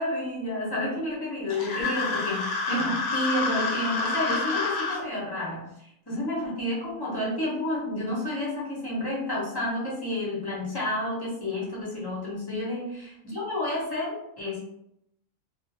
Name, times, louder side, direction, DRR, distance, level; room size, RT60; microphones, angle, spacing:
voice 1, 0.0-5.7 6.1-14.6, left 1 dB, 25° left, -6 dB, 0.5 m, -30 dB
sound 1, 1.5-5.0, left 3 dB, 75° left, 1.0 m, -28 dB
2.4 x 2.1 x 2.7 m, 0.78 s
omnidirectional pair, 1.5 m